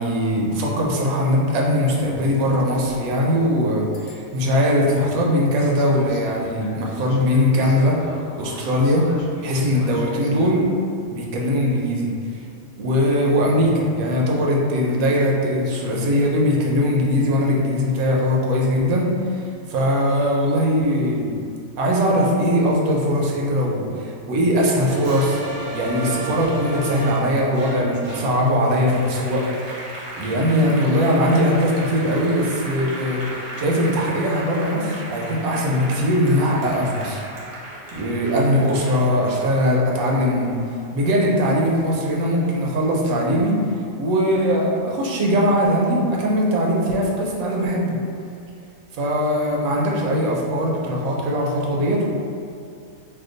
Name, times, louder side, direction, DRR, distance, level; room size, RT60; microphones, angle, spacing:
voice 1, 0.0-8.0 8.4-9.0 9.4-10.7 11.1-12.1 12.8-21.4 21.8-25.4 25.7-29.5 30.2-33.2 33.6-37.2 37.9-40.6 40.9-43.6 44.0-48.0 48.9-52.1, equal, 85° right, -2 dB, 1.0 m, -20 dB
sound 1, 1.9-3.2 3.9-4.5 5.6-10.6, left 2 dB, 85° left, 1.0 m, -41 dB
Applause, 24.8-41.6 42.0-43.2, right 1 dB, 50° right, 0.7 m, -35 dB
2.8 x 2.2 x 3.7 m, 2.3 s
omnidirectional pair, 1.5 m